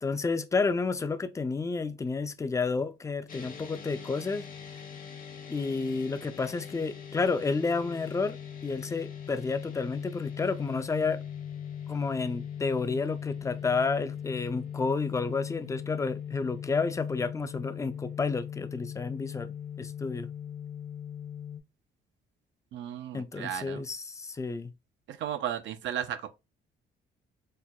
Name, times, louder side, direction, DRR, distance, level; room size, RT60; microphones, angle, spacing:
voice 1, 0.0-4.5 5.5-8.4 8.6-11.2 11.9-20.3 23.1-24.7, left 4 dB, 15° left, 0.3 m, -30 dB
sound 1, 3.3-21.6, left 8 dB, 45° left, 0.8 m, -40 dB
voice 2, 22.7-23.8 25.1-26.3, right 10 dB, 70° right, 0.4 m, -35 dB
4.2 x 2.1 x 2.2 m
cardioid pair, 90°, 20 cm